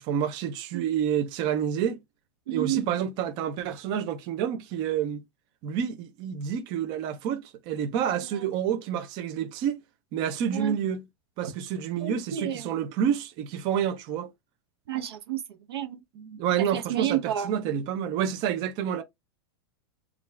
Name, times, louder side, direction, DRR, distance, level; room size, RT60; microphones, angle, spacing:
voice 1, 0.0-2.0 2.5-5.2 5.6-9.8 10.1-11.0 11.4-14.3 16.2-19.0, right 9 dB, 35° right, 0.5 m, -29 dB
voice 2, 2.5-2.9 8.3-8.4 10.5-10.8 11.4-11.5 12.0-12.6 14.9-16.0 16.7-17.5, right 11 dB, 90° right, 0.8 m, -31 dB
3.3 x 2.4 x 3.2 m
supercardioid pair, 155°, 13 cm